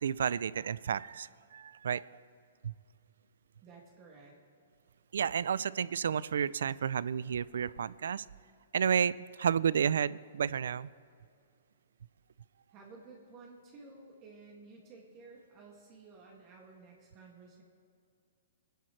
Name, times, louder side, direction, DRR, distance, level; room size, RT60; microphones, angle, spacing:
voice 1, 0.0-2.0 2.6-2.7 5.1-8.2 8.7-10.9, right 7 dB, 80° right, 20 dB, 0.3 m, -31 dB
voice 2, 3.6-4.4 12.7-17.6, right 3 dB, 25° right, -2 dB, 2.0 m, -54 dB
27.5 x 10.0 x 3.2 m, 2.4 s
hypercardioid pair, 155°, 0 cm